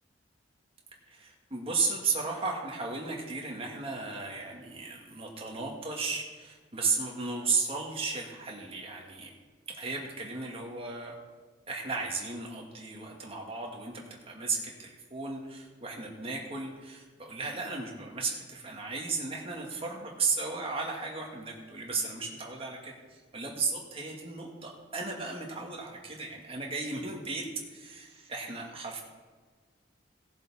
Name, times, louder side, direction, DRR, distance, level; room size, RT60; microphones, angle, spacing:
voice 1, 1.1-9.3 9.7-11.1 11.7-29.0, right 4 dB, 30° right, -1 dB, 2.0 m, -35 dB
18.0 x 7.2 x 4.3 m, 1.4 s
head